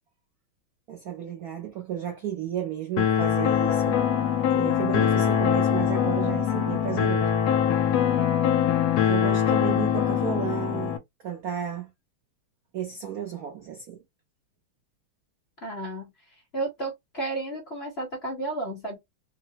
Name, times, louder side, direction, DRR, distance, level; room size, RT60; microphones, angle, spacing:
voice 1, 0.9-4.0 4.5-7.3 9.1-11.0 11.2-11.9 12.7-14.0, right 9 dB, 80° right, 0.8 m, -33 dB
sound 1, 3.0-11.0, left 9 dB, 80° left, 0.9 m, -23 dB
voice 2, 15.6-19.0, right 2 dB, 40° left, 0.9 m, -33 dB
3.7 x 2.0 x 2.7 m
omnidirectional pair, 2.3 m